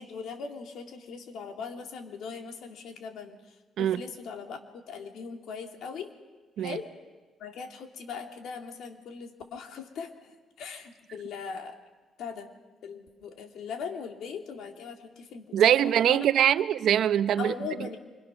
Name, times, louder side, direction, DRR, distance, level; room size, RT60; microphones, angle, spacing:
voice 1, 0.0-3.4 3.8-6.1 6.6-6.9 7.4-11.8 12.2-12.5 12.8-16.3 17.4-18.0, left 5 dB, 75° left, 4 dB, 2.8 m, -40 dB
voice 2, 15.5-17.5, right 10 dB, 75° right, 12 dB, 0.8 m, -23 dB
27.0 x 25.5 x 6.3 m, 1.3 s
cardioid pair, 90°, 0 cm